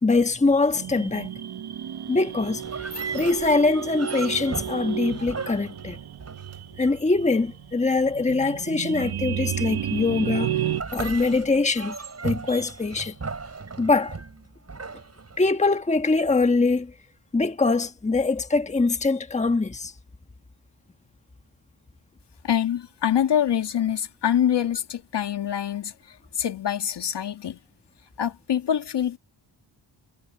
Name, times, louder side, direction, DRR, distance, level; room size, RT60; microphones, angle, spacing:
voice 1, 0.0-1.3 2.1-2.9 3.1-6.0 6.8-10.5 10.9-12.0 12.2-13.1 13.8-14.2 15.4-16.9 17.3-19.9, left 3 dB, 15° left, 1.2 m, -23 dB
sound 1, 0.7-10.8, right 10 dB, 60° right, 1.1 m, -32 dB
sound 2, 2.6-6.9 10.7-15.8, right 4 dB, 35° right, 6.4 m, -36 dB
voice 2, 22.4-27.6 28.2-29.2, left 9 dB, 70° left, 2.1 m, -25 dB
wide cardioid pair, 115°, 43 cm